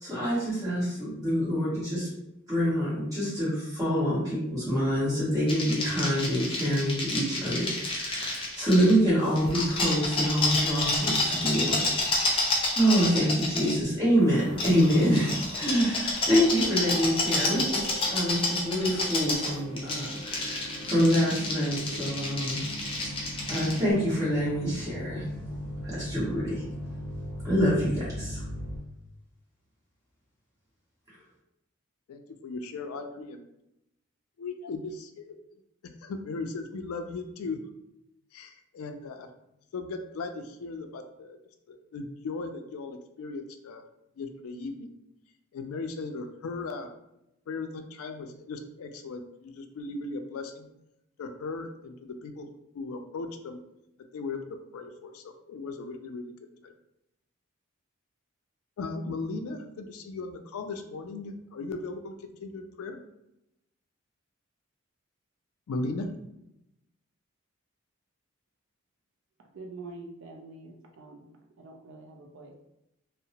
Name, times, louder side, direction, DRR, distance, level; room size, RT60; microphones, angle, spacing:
voice 1, 0.0-2.1 2.5-12.4 12.7-22.6 23.5-25.2 25.8-26.6 27.4-28.4, equal, 15° right, -9 dB, 1.2 m, -26 dB
sound 1, 5.5-8.9 9.4-13.8 14.6-23.8, left 2 dB, 25° left, 0.4 m, -30 dB
sound 2, 14.2-28.8, equal, 85° right, 0.9 m, -40 dB
voice 2, 32.1-33.4 34.4-35.4 36.0-37.6 38.3-39.3 39.7-41.4 41.7-43.8 44.2-44.9 45.5-46.9 47.5-50.7 51.2-52.5 52.7-53.6 54.1-56.3 56.6-56.7 58.8-63.0 65.7-66.1, left 3 dB, 85° left, 6 dB, 0.3 m, -37 dB
voice 3, 69.5-71.3 71.6-72.5, right 3 dB, 60° right, 2 dB, 0.4 m, -45 dB
2.7 x 2.0 x 2.8 m, 0.84 s
head